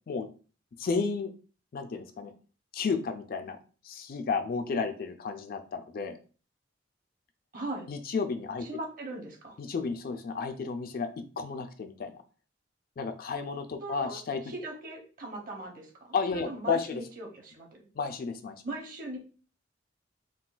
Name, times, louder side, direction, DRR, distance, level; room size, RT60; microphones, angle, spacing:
voice 1, 0.8-1.3 1.7-2.3 2.7-3.6 3.8-6.2 7.9-8.7 9.6-12.2 13.0-14.5 16.1-17.0 18.0-18.6, left 4 dB, 55° left, 6 dB, 0.4 m, -32 dB
voice 2, 7.5-7.9 8.6-9.6 13.8-14.2 14.5-16.1 16.5-17.7 18.6-19.3, right 2 dB, 50° right, 1 dB, 0.9 m, -39 dB
3.7 x 2.3 x 2.4 m, 0.37 s
head